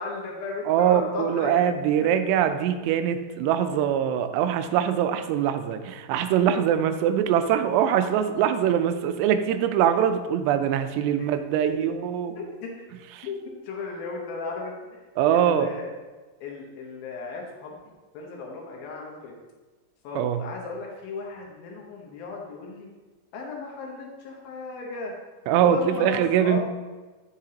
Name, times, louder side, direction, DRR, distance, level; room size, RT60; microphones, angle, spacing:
voice 1, 0.0-1.7 2.0-2.1 11.7-11.8 12.3-12.9 13.2-13.4 13.6-15.0 15.3-15.9 16.4-17.8 18.1-19.3 20.0-22.9 23.3-25.1 25.6-26.6, left 4 dB, 70° left, -1 dB, 2.5 m, -35 dB
voice 2, 0.7-12.3 13.2-13.3 15.2-15.7 20.2-20.4 25.5-26.6, right 9 dB, 90° right, 9 dB, 2.7 m, -23 dB
8.8 x 6.5 x 2.8 m, 1.3 s
omnidirectional pair, 4.8 m